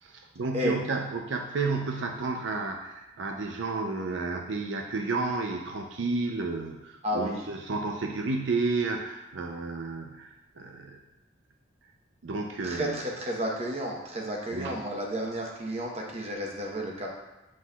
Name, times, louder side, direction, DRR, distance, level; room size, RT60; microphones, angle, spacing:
voice 1, 0.0-11.0 12.2-13.0 14.5-14.8, right 3 dB, 75° right, 3 dB, 0.5 m, -31 dB
voice 2, 7.0-7.4 12.6-17.1, equal, 35° right, -1 dB, 0.9 m, -32 dB
7.4 x 6.1 x 2.3 m, 0.99 s
head